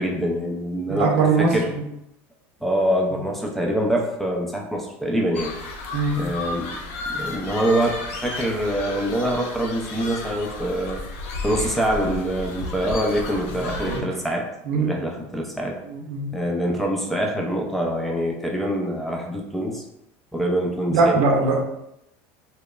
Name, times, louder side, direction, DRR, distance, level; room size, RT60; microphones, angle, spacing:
voice 1, 0.0-1.7 2.6-5.5 6.2-6.8 7.1-11.0 11.4-14.5 14.7-15.8 16.3-19.8 20.3-21.2, equal, 5° left, 0 dB, 0.4 m, -25 dB
voice 2, 0.9-1.8 5.9-6.2 13.8-14.0 14.7-14.9 15.9-16.3 20.9-21.6, right 4 dB, 80° right, 1 dB, 0.6 m, -21 dB
sound 1, 5.3-14.0, left 3 dB, 80° left, 0.4 m, -33 dB
2.9 x 2.0 x 2.3 m, 0.84 s
supercardioid pair, 120°, 7 cm